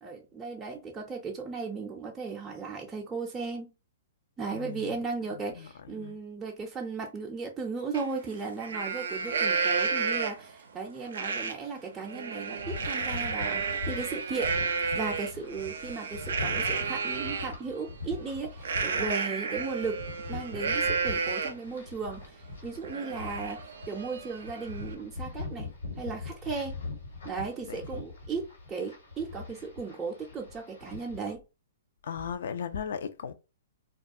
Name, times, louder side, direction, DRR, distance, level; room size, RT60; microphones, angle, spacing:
voice 1, 0.0-3.7 4.4-14.5 14.9-20.0 20.3-25.7 26.0-26.8 27.2-31.4, right 4 dB, 15° right, 0.5 m, -36 dB
voice 2, 4.5-4.9 5.3-6.2 27.7-27.8 32.0-33.3, left 7 dB, 65° left, 0.3 m, -37 dB
Livestock farm animals working animals, 7.9-8.0 8.4-10.5 11.1-11.5 11.9-17.5 18.6-21.7 22.1-22.2 22.6-24.9, right 5 dB, 75° right, 0.4 m, -31 dB
sound 1, 12.6-19.1 19.6-31.3, left 4 dB, 90° left, 1.2 m, -42 dB
2.3 x 2.2 x 2.6 m
hypercardioid pair, 125°, 0 cm